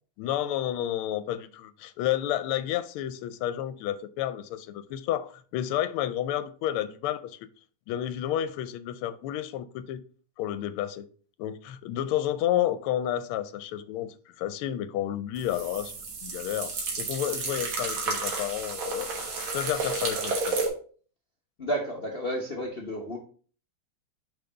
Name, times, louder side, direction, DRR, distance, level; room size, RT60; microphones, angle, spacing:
voice 1, 0.2-7.4 7.9-10.0 10.4-11.0 11.4-15.9 16.2-20.6, left 11 dB, 85° left, 1.4 m, -31 dB
sound 1, 15.4-20.7, right 4 dB, 65° right, 2.1 m, -32 dB
voice 2, 21.6-23.2, equal, 55° left, 0.6 m, -31 dB
5.8 x 5.0 x 3.9 m
omnidirectional pair, 2.4 m